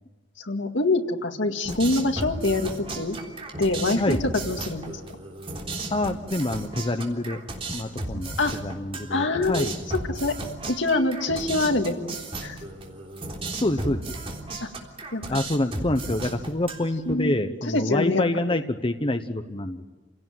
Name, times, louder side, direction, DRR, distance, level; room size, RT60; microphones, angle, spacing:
voice 1, 0.4-2.7 3.0-3.2 3.6-5.0 8.4-8.6 9.1-9.7 9.9-10.4 10.7-12.6 14.6-14.7 15.1-15.4 17.1-17.4 17.7-18.6, left 2 dB, 75° left, 5 dB, 2.0 m, -25 dB
sound 1, 1.6-17.1, right 2 dB, 30° right, 3.5 m, -35 dB
voice 2, 5.9-7.4 7.7-8.4 8.6-9.7 13.6-14.0 15.3-19.8, left 1 dB, 30° left, 7 dB, 1.0 m, -26 dB
28.5 x 17.0 x 9.2 m, 1.3 s
head